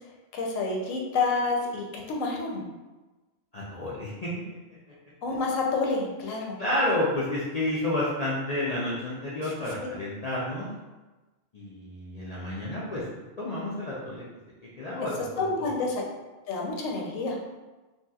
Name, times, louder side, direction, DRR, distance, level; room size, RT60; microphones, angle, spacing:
voice 1, 0.3-2.6 5.2-6.6 9.8-9.9 15.0-15.1 15.4-16.0 16.5-17.4, left 3 dB, 85° left, -1 dB, 1.0 m, -28 dB
voice 2, 3.5-4.3 6.6-10.7 11.5-13.0 13.4-14.2 14.8-15.1 15.4-15.5, left 1 dB, 60° left, -8 dB, 0.4 m, -30 dB
3.0 x 2.8 x 2.3 m, 1.2 s
omnidirectional pair, 1.3 m